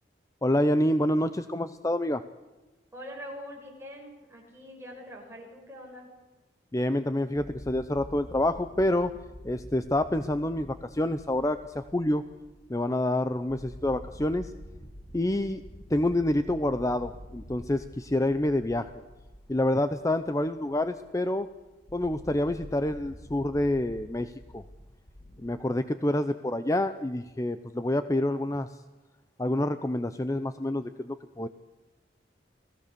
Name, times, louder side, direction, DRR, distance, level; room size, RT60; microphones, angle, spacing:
voice 1, 0.4-2.2 6.7-9.1 9.4-12.2 12.7-14.5 15.1-15.6 15.9-18.9 19.5-21.5 21.9-24.6 25.4-28.8 29.4-31.5, left 1 dB, 20° left, 11 dB, 0.6 m, -27 dB
voice 2, 2.9-6.1, equal, 15° right, -1 dB, 6.0 m, -43 dB
sound 1, 7.3-25.5, equal, 45° left, 2.3 m, -48 dB
29.5 x 18.5 x 6.8 m, 1.2 s
head